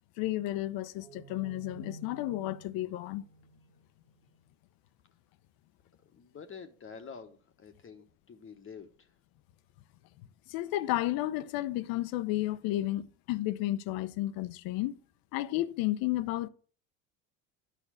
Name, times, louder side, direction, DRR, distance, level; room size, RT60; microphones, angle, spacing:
voice 1, 0.2-3.2 10.5-15.0 15.3-16.5, left 15 dB, 60° left, 0.8 m, -32 dB
sound 1, 1.0-4.4, right 3 dB, 85° right, 0.9 m, -51 dB
voice 2, 6.1-9.1, left 6 dB, 30° left, 1.2 m, -48 dB
10.0 x 5.5 x 6.3 m
hypercardioid pair, 75°, 41 cm